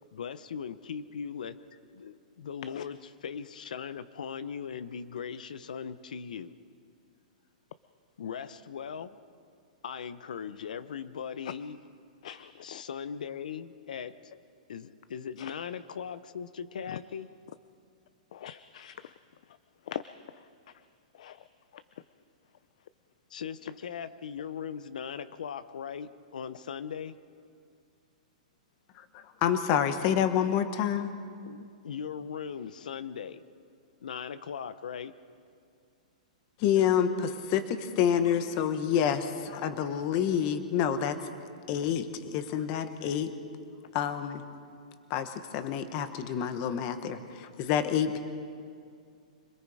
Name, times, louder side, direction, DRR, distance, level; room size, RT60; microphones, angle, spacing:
voice 1, 0.1-1.6 1.9-6.5 8.2-9.2 9.8-11.8 12.6-14.1 14.7-17.3 23.3-27.2 31.4-33.4 34.0-35.1, left 7 dB, 85° left, 13 dB, 0.9 m, -39 dB
voice 2, 12.2-12.8 15.4-15.5 16.9-17.0 18.3-19.0 19.9-20.0 21.2-21.4 41.8-41.9, left 10 dB, 55° left, 13 dB, 0.5 m, -41 dB
voice 3, 28.9-31.1 36.6-41.2 41.7-43.3 43.9-44.4 45.1-48.2, left 9 dB, 30° left, 9 dB, 1.2 m, -28 dB
26.5 x 20.5 x 4.9 m, 2.3 s
hypercardioid pair, 170°, 4 cm